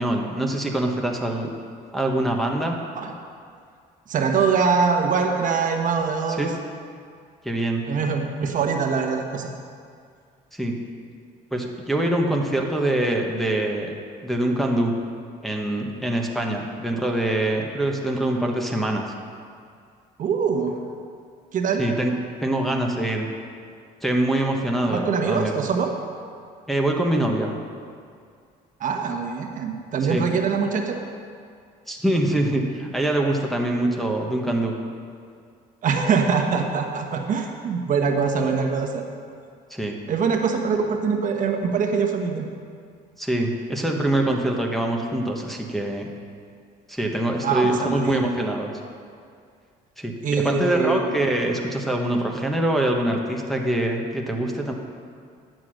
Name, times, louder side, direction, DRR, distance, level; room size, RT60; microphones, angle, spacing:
voice 1, 0.0-1.5 1.9-2.8 6.4-6.5 7.4-7.9 10.5-10.8 11.5-13.9 14.2-14.9 15.4-19.0 21.8-23.3 24.0-25.6 26.7-27.5 30.1-30.3 31.9-34.7 39.7-40.0 43.2-46.1 46.9-48.7 50.0-54.7, right 1 dB, ahead, -1 dB, 1.3 m, -24 dB
voice 2, 4.1-6.5 7.9-9.5 20.2-20.8 21.5-21.8 24.9-25.9 28.8-31.0 35.8-39.0 40.1-42.5 47.4-48.3 50.2-51.1, right 5 dB, 50° right, 3 dB, 1.2 m, -23 dB
10.5 x 7.7 x 6.5 m, 2.2 s
cardioid pair, 110°, 17 cm